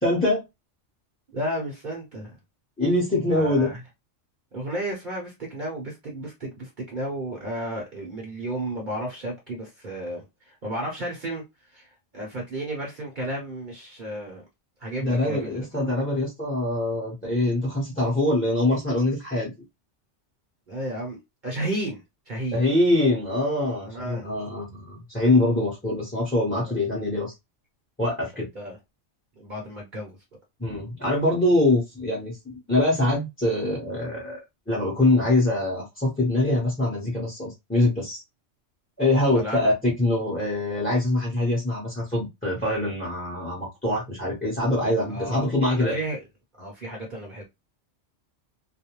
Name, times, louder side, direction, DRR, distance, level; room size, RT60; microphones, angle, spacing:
voice 1, 0.0-0.4 2.8-3.7 15.0-19.5 22.5-27.3 28.0-28.5 30.6-34.4 34.7-38.2 39.0-39.7 40.0-46.0, left 1 dB, 10° left, 0.8 m, -24 dB
voice 2, 1.3-2.4 3.3-3.8 4.5-14.4 14.8-15.7 20.7-22.6 23.8-24.3 26.6-26.8 28.5-28.8 29.4-30.2 39.1-39.7 45.1-46.2 46.6-47.4, right 1 dB, 45° right, 0.9 m, -33 dB
2.4 x 2.1 x 2.8 m
omnidirectional pair, 1.2 m